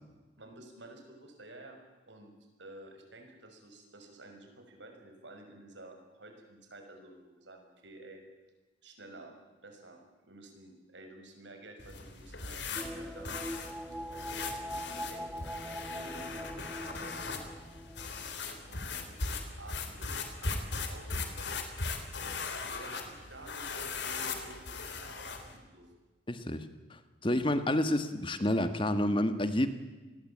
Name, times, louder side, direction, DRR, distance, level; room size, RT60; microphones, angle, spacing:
voice 1, 0.4-1.8 2.1-2.3 2.6-8.2 8.8-9.3 9.6-13.4 14.1-15.3 15.8-17.1 18.3-21.4 22.2-25.9, right 1 dB, 75° right, 4 dB, 6.4 m, -52 dB
sound 1, 11.8-25.6, left 4 dB, 65° left, 3.7 m, -39 dB
sound 2, 12.8-18.7 19.0-19.1, equal, 5° right, 0.9 m, -42 dB
voice 2, 26.3-29.7, left 1 dB, 30° left, 10 dB, 1.6 m, -29 dB
27.5 x 20.5 x 8.7 m, 1.2 s
head